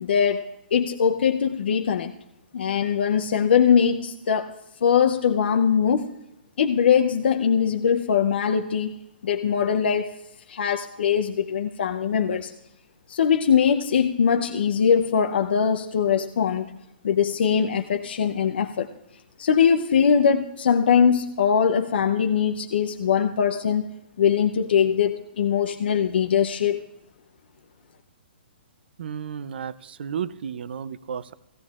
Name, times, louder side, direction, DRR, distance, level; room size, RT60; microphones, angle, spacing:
voice 1, 0.0-2.1 2.5-6.1 6.6-8.9 9.2-10.1 10.5-12.5 13.1-16.7 17.0-18.9 19.4-23.9 24.2-26.8, left 7 dB, 70° left, 5 dB, 0.6 m, -21 dB
voice 2, 29.0-31.3, right 7 dB, 65° right, 18 dB, 0.5 m, -33 dB
18.0 x 15.0 x 2.4 m, 0.90 s
hypercardioid pair, 140°, 6 cm